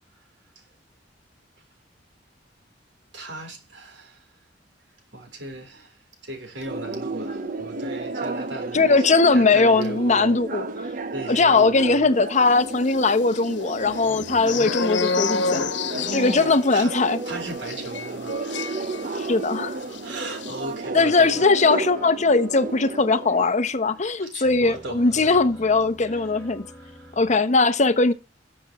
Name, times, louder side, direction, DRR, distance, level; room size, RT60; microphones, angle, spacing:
voice 1, 3.1-4.2 5.1-6.0 6.2-10.4 11.1-12.1 15.9-19.3 19.8-21.5 24.2-25.5 26.1-26.2 26.7-27.2, right 2 dB, 85° right, 3.8 m, -38 dB
sound 1, 6.7-23.5, right 3 dB, 50° right, 0.9 m, -33 dB
voice 2, 8.7-10.7 11.3-15.6 16.1-17.2 19.2-19.8 20.9-26.7 27.2-28.1, left 3 dB, 40° left, 0.9 m, -20 dB
sound 2, 12.8-19.5 19.8-20.0 20.3-20.6, left 4 dB, 85° left, 1.1 m, -30 dB
sound 3, 20.9-27.4, equal, 15° left, 1.6 m, -46 dB
18.5 x 7.4 x 3.1 m
head